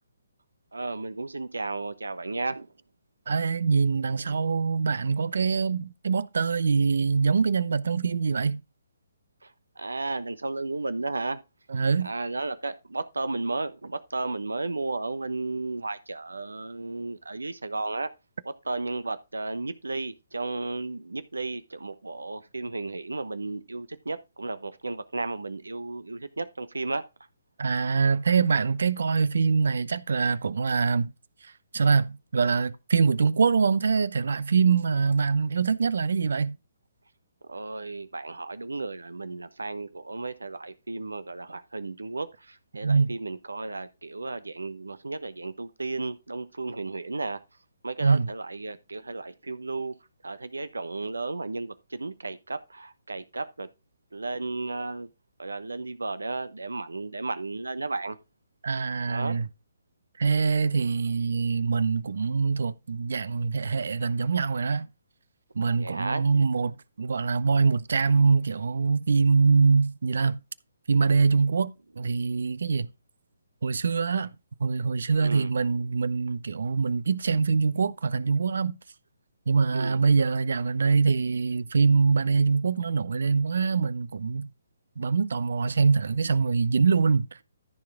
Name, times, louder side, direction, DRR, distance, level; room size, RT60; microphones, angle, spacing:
voice 1, 0.7-2.7 4.2-4.4 9.4-11.4 12.0-18.1 18.4-27.0 37.5-47.4 47.8-50.0 50.2-53.7 54.1-55.1 55.4-58.2 59.1-59.4 60.8-60.9 65.6-66.2 75.2-75.5 79.7-80.0, right 3 dB, 85° right, 1.0 m, -34 dB
voice 2, 3.3-8.6 11.7-12.1 27.6-31.1 31.4-36.6 42.8-43.2 48.0-48.3 58.6-59.5 60.2-64.9 65.5-70.4 70.9-72.9 73.6-74.3 74.6-78.8 79.5-84.5 85.0-87.3, right 5 dB, 65° right, 0.7 m, -24 dB
14.0 x 4.8 x 3.5 m
figure-of-eight pair, 135°, 0 cm